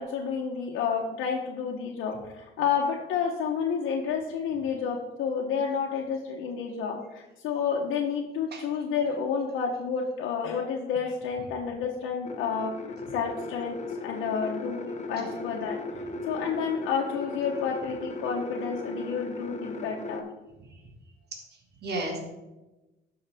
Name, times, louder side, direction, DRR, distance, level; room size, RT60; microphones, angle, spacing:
voice 1, 0.0-12.7 13.1-15.8 16.3-20.2, left 6 dB, 90° left, -1 dB, 0.9 m, -30 dB
voice 2, 8.5-8.8 15.2-15.3 20.6-20.9 21.5-22.2, right 1 dB, 55° right, 1 dB, 1.8 m, -36 dB
sound 1, 12.2-20.2, left 3 dB, 35° left, 1.0 m, -37 dB
12.0 x 5.5 x 3.4 m, 1.0 s
cardioid pair, 90°, 20 cm